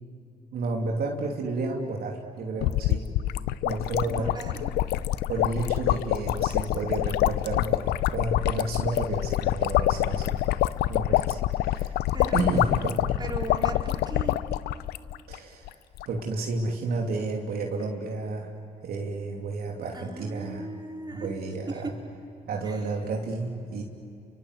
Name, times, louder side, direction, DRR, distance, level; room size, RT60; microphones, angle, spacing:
voice 1, 0.5-3.0 3.6-4.3 5.3-10.5 10.9-12.1 12.3-13.0 15.3-15.7 16.1-18.5 18.8-20.6 21.1-21.9 22.5-23.8, right 3 dB, 70° right, 0 dB, 2.9 m, -31 dB
sound 1, 2.6-15.4 15.6-15.7 15.9-16.2, left 14 dB, 80° left, 0.6 m, -26 dB
voice 2, 4.1-4.7 12.1-12.8 13.2-14.4 19.9-21.3 21.7-21.9 22.6-22.8, right 2 dB, 25° right, 1 dB, 4.4 m, -37 dB
30.0 x 24.0 x 8.1 m, 2.6 s
supercardioid pair, 55°, 16 cm